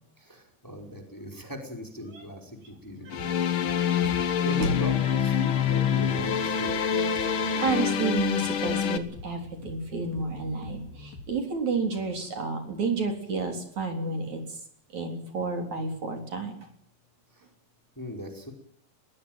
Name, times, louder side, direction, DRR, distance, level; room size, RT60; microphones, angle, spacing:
voice 1, 0.2-4.1 4.4-6.8 17.3-17.4 17.9-18.5, equal, 5° left, 4 dB, 4.6 m, -39 dB
sound 1, 2.9-11.4, left 3 dB, 75° left, 5.9 m, -46 dB
sound 2, 3.1-9.0, left 8 dB, 50° left, 1.6 m, -26 dB
voice 2, 7.2-14.4 14.9-16.6, right 4 dB, 55° right, 5 dB, 5.1 m, -31 dB
21.5 x 20.5 x 9.3 m, 0.63 s
omnidirectional pair, 4.1 m